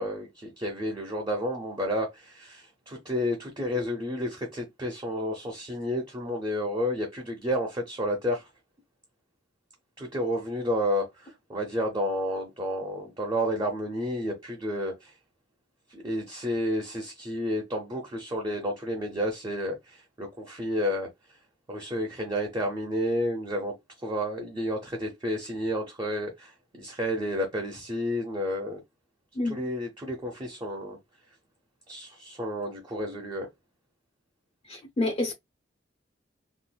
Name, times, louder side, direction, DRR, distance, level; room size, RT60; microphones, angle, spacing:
voice 1, 0.0-8.5 10.0-15.1 15.9-21.1 21.7-28.8 29.4-31.0 31.9-33.5, equal, 25° right, 0.6 m, -31 dB
voice 2, 34.6-35.3, left 2 dB, 35° left, 0.6 m, -28 dB
3.7 x 2.5 x 2.2 m
head